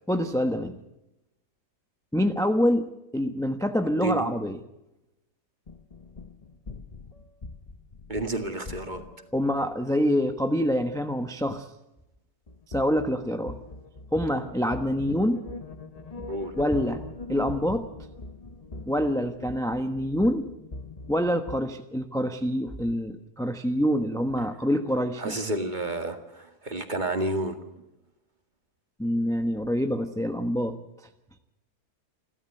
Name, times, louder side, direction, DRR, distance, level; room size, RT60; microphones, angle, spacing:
voice 1, 0.1-0.8 2.1-4.6 9.3-11.7 12.7-13.6 14.1-15.4 16.6-17.0 17.3-17.9 18.9-20.5 21.1-25.4 29.0-30.8, equal, ahead, 7 dB, 1.0 m, -26 dB
sound 1, 5.7-9.4 12.5-21.6, left 2 dB, 30° left, 0.9 m, -42 dB
voice 2, 8.1-9.0 16.3-16.6 25.2-27.6, right 2 dB, 30° right, 7 dB, 2.0 m, -30 dB
29.0 x 13.0 x 7.8 m, 0.90 s
omnidirectional pair, 1.6 m